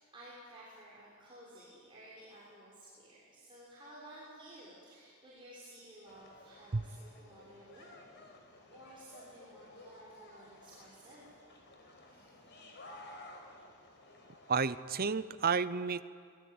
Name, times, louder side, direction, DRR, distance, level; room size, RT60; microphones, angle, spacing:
voice 1, 0.0-7.9 8.7-11.2 12.1-12.3, right 1 dB, 25° right, -7 dB, 6.8 m, -54 dB
sound 1, 6.1-14.8, left 1 dB, 55° left, 5.0 m, -55 dB
voice 2, 14.5-16.0, right 5 dB, 45° right, 15 dB, 0.7 m, -31 dB
27.0 x 22.0 x 9.6 m, 2.2 s
head